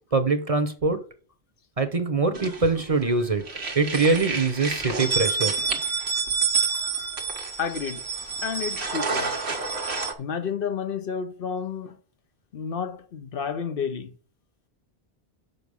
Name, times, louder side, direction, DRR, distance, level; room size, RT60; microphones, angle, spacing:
voice 1, 0.1-1.0 1.8-3.4 3.7-5.5, right 3 dB, 35° right, 0.9 m, -23 dB
sound 1, 2.3-3.1 3.4-10.1, right 5 dB, 90° right, 1.5 m, -28 dB
voice 2, 6.8-9.3 10.2-12.0 12.5-14.1, left 6 dB, 65° left, 0.9 m, -31 dB
6.7 x 5.7 x 5.5 m
omnidirectional pair, 1.1 m